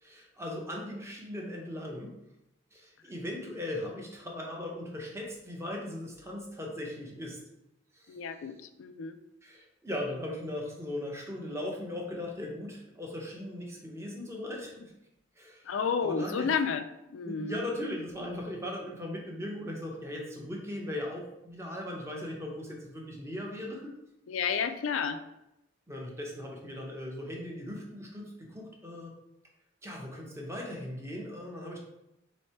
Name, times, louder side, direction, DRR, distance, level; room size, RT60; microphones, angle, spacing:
voice 1, 0.0-2.1 2.7-7.4 7.9-8.2 9.4-14.9 15.4-15.7 16.0-16.5 17.3-23.9 25.9-29.1 29.8-31.8, left 1 dB, 15° right, -1 dB, 0.8 m, -38 dB
voice 2, 8.1-9.2 15.6-16.8 17.1-17.6 24.3-25.2, left 6 dB, 80° left, 10 dB, 0.4 m, -31 dB
3.5 x 3.2 x 4.3 m, 0.86 s
head